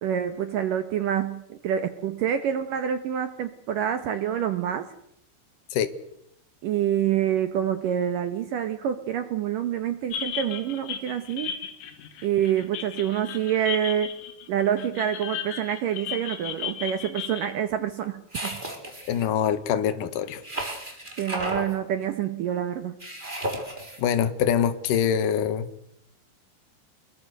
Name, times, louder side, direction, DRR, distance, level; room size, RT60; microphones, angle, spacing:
voice 1, 0.0-4.9 6.6-11.5 12.2-14.2 14.5-18.6 21.2-23.0, right 9 dB, 75° right, 9 dB, 2.0 m, -27 dB
sound 1, 10.1-17.5, left 9 dB, 85° left, 4.4 m, -35 dB
sound 2, 18.3-19.3 20.4-21.7 23.0-24.0, right 1 dB, 10° right, 3.6 m, -33 dB
voice 2, 19.1-20.4 24.0-25.7, left 8 dB, 60° left, 10 dB, 2.6 m, -24 dB
27.5 x 22.0 x 6.6 m, 0.80 s
omnidirectional pair, 5.4 m